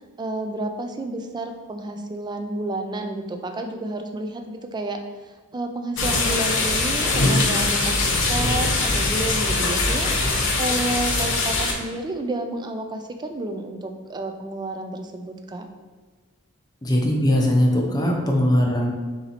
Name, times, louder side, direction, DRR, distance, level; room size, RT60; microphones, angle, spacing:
voice 1, 0.2-5.0 5.5-15.7, right 2 dB, 20° right, 5 dB, 0.3 m, -30 dB
sound 1, 6.0-11.7, left 2 dB, 60° left, 0.8 m, -22 dB
voice 2, 16.8-18.9, left 1 dB, 20° left, 0 dB, 0.6 m, -20 dB
4.0 x 2.9 x 4.0 m, 1.4 s
head